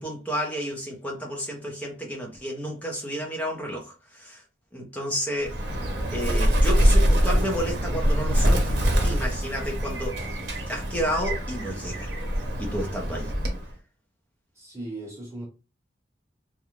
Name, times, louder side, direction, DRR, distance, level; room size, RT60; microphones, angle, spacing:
voice 1, 0.0-4.4 4.7-5.6 6.1-8.7 9.0-10.2 10.7-12.1 12.6-13.3, equal, 10° left, 0.6 m, -31 dB
Bird, 5.4-13.7, equal, 70° right, 0.7 m, -24 dB
voice 2, 14.6-15.4, right 2 dB, 15° right, 1.0 m, -37 dB
2.4 x 2.2 x 3.1 m
head